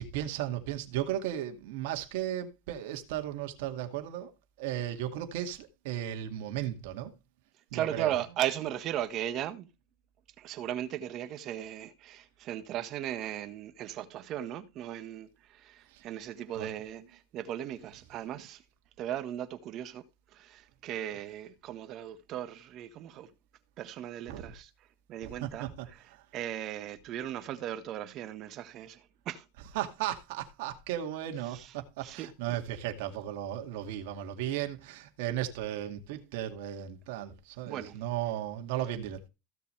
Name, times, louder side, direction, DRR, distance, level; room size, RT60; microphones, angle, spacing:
voice 1, 0.0-4.3 4.6-7.1 7.7-8.2 15.9-16.0 16.5-16.7 24.3-24.5 25.2-25.9 26.1-26.2 29.7-39.3, right 12 dB, 70° right, 2.2 m, -35 dB
voice 2, 7.7-9.7 10.4-18.6 19.0-20.0 20.3-23.3 23.8-24.7 25.1-26.0 26.3-29.4 31.4-31.7 32.0-32.6 37.7-38.0, right 11 dB, 50° right, 1.4 m, -37 dB
15.5 x 6.9 x 3.3 m
hypercardioid pair, 95°, 0 cm